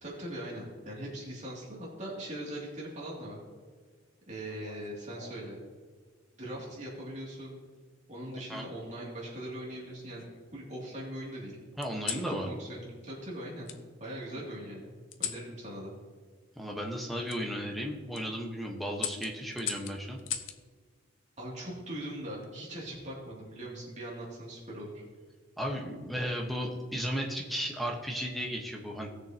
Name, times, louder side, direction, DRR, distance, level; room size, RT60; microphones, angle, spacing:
voice 1, 0.0-3.4 4.3-5.6 6.3-7.6 8.1-10.2 10.5-11.6 12.1-13.7 14.0-14.9 15.2-15.9 21.4-25.0, right 1 dB, 40° right, -5 dB, 2.7 m, -41 dB
sound 1, 4.5-5.6 6.6-7.0 8.3-9.1 9.7-10.6 11.8-12.3 13.7-13.8 15.1-15.5 17.3-17.4 17.9-18.2 19.0-20.6 22.1-22.5, left 9 dB, 80° left, 0.7 m, -40 dB
voice 2, 11.8-12.5 16.6-20.2 25.6-29.1, equal, ahead, -1 dB, 1.2 m, -34 dB
18.0 x 6.6 x 2.9 m, 1.5 s
head